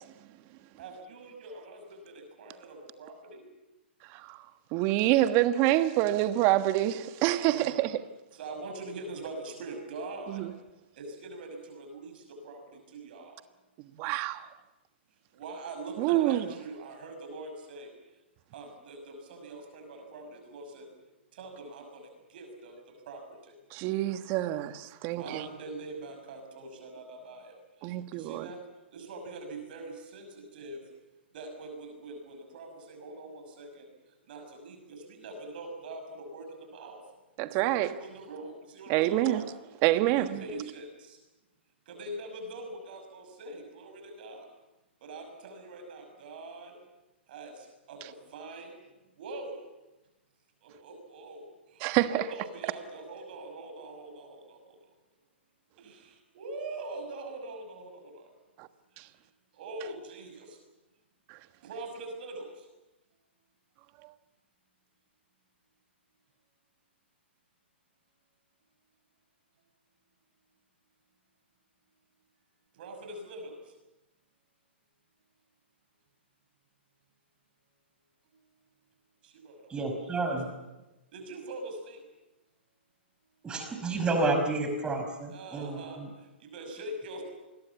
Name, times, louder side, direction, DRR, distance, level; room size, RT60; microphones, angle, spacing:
voice 1, 0.8-3.4 7.4-7.8 8.3-10.4 10.9-13.4 15.3-17.9 18.5-20.9 21.3-23.6 25.1-28.6 28.9-30.8 31.3-37.0 37.6-39.7 39.9-41.2 41.9-44.5 45.0-46.8 47.3-48.7 49.2-49.5 50.6-54.8 55.8-58.3 58.9-59.1 59.5-60.6 61.5-62.7 72.7-73.7 78.3-78.4 79.2-80.4 81.1-82.0 85.3-87.2, right 2 dB, 55° right, 6.0 m, -43 dB
voice 2, 4.1-4.4 4.7-8.0 10.3-10.5 13.9-14.5 16.0-16.5 23.7-25.4 27.8-28.5 37.4-38.0 38.9-39.4 39.8-40.4 51.8-52.3 58.6-58.7 59.0-59.1 61.3-61.4 64.0-64.1, right 15 dB, 35° right, 1.4 m, -27 dB
voice 3, 79.7-80.5 83.4-86.1, right 2 dB, 15° right, 5.2 m, -30 dB
27.5 x 21.5 x 7.2 m
hypercardioid pair, 125°, 6 cm